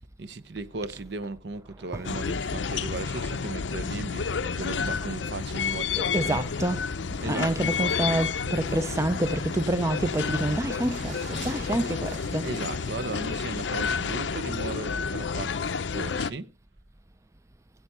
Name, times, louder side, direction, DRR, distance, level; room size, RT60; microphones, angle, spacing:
voice 1, 0.2-6.5 7.2-7.6 12.4-16.5, right 3 dB, 60° right, 0.7 m, -36 dB
sound 1, 2.0-16.3, left 5 dB, 70° left, 0.6 m, -30 dB
voice 2, 6.0-6.8 7.2-12.8, right 1 dB, 15° right, 0.4 m, -28 dB
sound 2, 8.7-14.0, right 2 dB, 45° right, 4.0 m, -46 dB
8.9 x 8.4 x 5.5 m
head